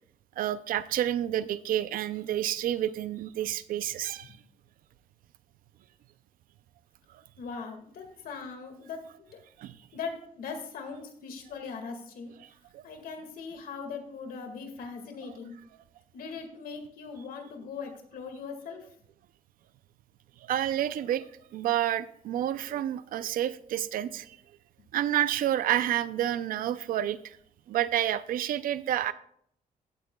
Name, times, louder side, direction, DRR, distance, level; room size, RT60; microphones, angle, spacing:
voice 1, 0.4-4.4 9.6-9.8 12.4-12.8 20.4-21.3 21.5-24.4 24.9-27.4 27.7-29.1, right 11 dB, 80° right, 14 dB, 0.5 m, -29 dB
voice 2, 7.4-9.4 9.9-12.3 12.8-15.5 16.1-18.9, left 5 dB, 90° left, 5 dB, 1.9 m, -40 dB
15.0 x 8.6 x 2.3 m, 0.65 s
wide cardioid pair, 155°, 14 cm